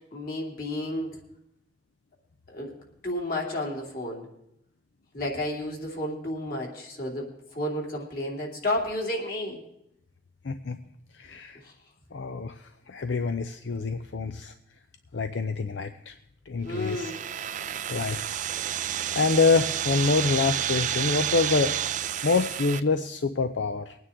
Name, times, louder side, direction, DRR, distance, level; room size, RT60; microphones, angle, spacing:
voice 1, 0.1-1.2 2.5-4.3 5.1-9.6 11.6-11.7 13.1-13.3 15.6-15.7 16.6-17.2, left 1 dB, 55° left, -1 dB, 2.9 m, -32 dB
voice 2, 10.4-10.8 11.1-11.6 12.1-14.5 15.1-16.1 16.5-17.1 17.9-18.3 19.1-21.8 22.2-24.0, left 4 dB, 85° left, 8 dB, 0.6 m, -26 dB
sound 1, 16.7-22.8, right 10 dB, 45° right, 0.4 m, -30 dB
21.5 x 9.4 x 3.7 m, 0.80 s
head